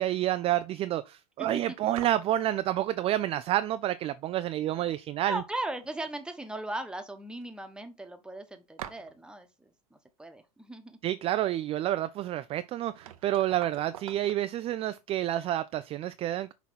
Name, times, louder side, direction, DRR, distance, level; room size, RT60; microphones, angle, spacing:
voice 1, 0.0-5.4 11.0-16.5, right 13 dB, 30° right, 0.4 m, -29 dB
sound 1, 2.0-2.4 4.4-4.5 4.8-5.5 5.7-6.5 6.8-6.9 7.4-7.5 8.8-9.3 12.4-12.5 12.8-14.4, right 11 dB, 65° right, 0.8 m, -45 dB
voice 2, 5.3-11.0, right 1 dB, 5° right, 1.2 m, -38 dB
6.1 x 4.1 x 4.2 m
figure-of-eight pair, 80°, 19 cm